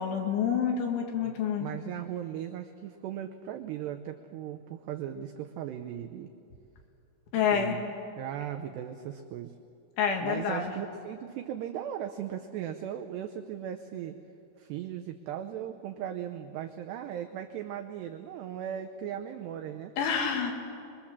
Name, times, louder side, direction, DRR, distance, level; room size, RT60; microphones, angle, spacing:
voice 1, 0.0-1.7 7.3-7.8 10.0-10.7 20.0-20.5, left 7 dB, 70° left, 2 dB, 4.3 m, -28 dB
voice 2, 1.2-6.3 7.5-7.8 8.2-9.5 10.2-14.2 14.6-19.9, right 10 dB, 85° right, 5 dB, 2.4 m, -38 dB
25.5 x 22.0 x 7.3 m, 2.6 s
omnidirectional pair, 5.8 m